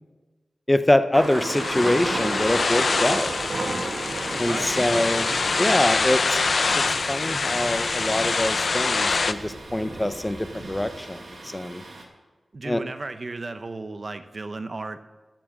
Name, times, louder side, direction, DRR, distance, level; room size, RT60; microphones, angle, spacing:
voice 1, 0.7-3.4 4.4-5.2 5.6-6.4 6.7-11.8 12.6-12.8, left 1 dB, 20° left, 11 dB, 0.7 m, -24 dB
Thunder, 1.1-12.0, right 2 dB, 70° right, 1.9 m, -34 dB
sound 1, 1.2-9.3, left 4 dB, 65° left, 0.5 m, -25 dB
Bird, 1.4-11.3, equal, ahead, 3.7 m, -48 dB
voice 2, 4.4-5.1 12.5-15.0, right 3 dB, 55° right, 10 dB, 0.7 m, -34 dB
11.0 x 7.4 x 7.5 m, 1.3 s
cardioid pair, 55°, 0 cm